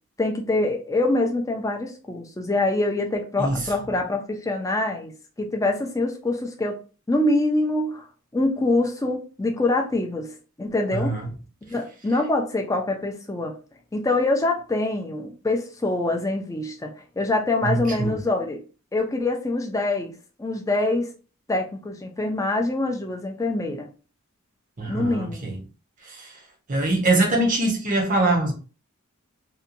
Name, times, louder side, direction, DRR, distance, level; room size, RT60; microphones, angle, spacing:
voice 1, 0.2-6.8 7.1-8.1 8.3-11.2 11.7-13.6 13.9-18.6 18.9-21.1 21.5-23.9 24.9-25.5, left 2 dB, 15° left, 0.4 m, -25 dB
voice 2, 3.4-3.7 10.9-11.3 17.6-18.2 24.8-25.6 26.0-26.3 26.7-28.5, right 2 dB, 35° right, 0.6 m, -23 dB
2.8 x 2.2 x 2.5 m
head